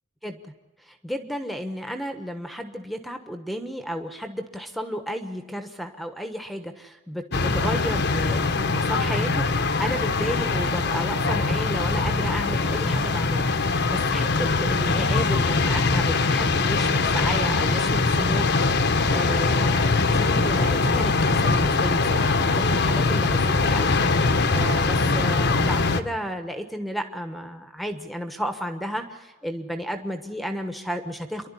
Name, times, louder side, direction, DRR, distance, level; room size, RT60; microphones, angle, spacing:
voice 1, 0.2-0.5 0.8-18.5 18.7-31.5, equal, ahead, 7 dB, 1.2 m, -33 dB
sound 1, 7.3-26.0, left 3 dB, 55° left, 1.1 m, -22 dB
28.5 x 12.0 x 9.9 m, 1.1 s
head